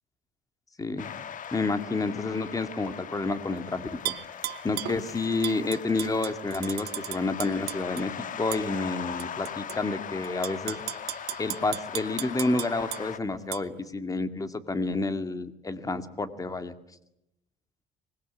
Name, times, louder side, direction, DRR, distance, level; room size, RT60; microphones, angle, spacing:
voice 1, 0.8-1.2 1.5-4.1 4.6-10.8 11.4-16.7, left 3 dB, 20° left, 10 dB, 2.2 m, -29 dB
sound 1, 1.0-13.2, left 8 dB, 50° left, 1.5 m, -40 dB
Tap / Glass, 4.1-5.0 5.4-8.0 8.5-8.6 9.2-9.8 10.2-13.0 13.5-13.6, right 15 dB, 70° right, 1.0 m, -35 dB
25.5 x 21.0 x 9.5 m, 0.84 s
cardioid pair, 110°, 17 cm